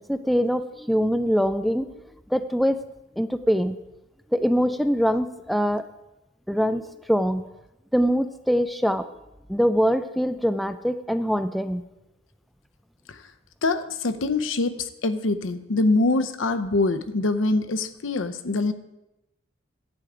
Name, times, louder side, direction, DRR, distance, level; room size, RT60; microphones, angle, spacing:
voice 1, 0.1-1.9 2.3-2.8 3.2-3.8 4.3-5.8 6.5-6.8 7.1-7.4 7.9-9.0 9.5-11.8, equal, ahead, 10 dB, 0.3 m, -23 dB
voice 2, 13.6-18.7, left 2 dB, 75° left, 11 dB, 0.7 m, -24 dB
10.5 x 8.0 x 4.9 m, 0.93 s
head